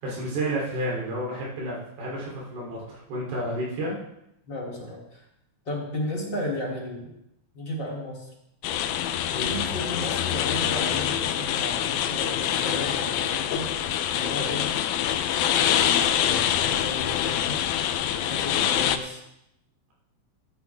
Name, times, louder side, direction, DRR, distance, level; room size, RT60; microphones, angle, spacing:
voice 1, 0.0-4.0 9.3-9.6, right 1 dB, 85° right, -4 dB, 5.3 m, -31 dB
voice 2, 4.4-5.2 5.7-7.1 7.5-8.3 9.4-13.7 14.1-14.7 15.4-17.6 18.1-19.2, left 1 dB, 30° left, -4 dB, 3.6 m, -34 dB
sound 1, 8.6-19.0, left 10 dB, 85° left, 2.6 m, -25 dB
14.0 x 12.0 x 3.5 m, 0.81 s
omnidirectional pair, 4.3 m